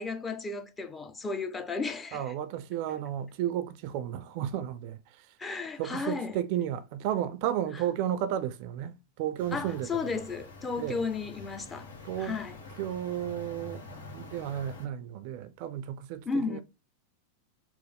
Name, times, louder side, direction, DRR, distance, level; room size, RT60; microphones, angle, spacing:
voice 1, 0.0-2.3 5.4-6.4 9.5-11.9 12.2-12.6 16.3-16.6, left 4 dB, 20° left, 0.7 m, -34 dB
voice 2, 2.1-5.3 5.8-10.0 10.8-11.0 12.0-12.4 12.8-13.8 14.1-16.6, right 11 dB, 55° right, 0.5 m, -33 dB
sound 1, 9.4-14.9, left 3 dB, 75° left, 1.3 m, -46 dB
4.5 x 2.0 x 3.5 m
hypercardioid pair, 95°, 0 cm